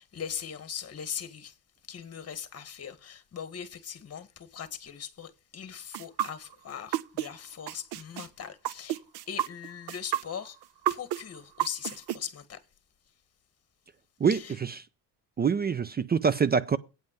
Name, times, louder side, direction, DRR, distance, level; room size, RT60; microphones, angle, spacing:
voice 1, 0.0-1.5 1.9-9.0 9.3-10.6 10.9-12.6 14.3-14.5, left 8 dB, 40° left, 1.7 m, -40 dB
sound 1, 5.9-7.3 7.7-12.2, right 13 dB, 90° right, 0.8 m, -30 dB
voice 2, 15.4-16.8, right 6 dB, 25° right, 0.5 m, -24 dB
9.1 x 5.4 x 7.6 m
cardioid pair, 110°, 38 cm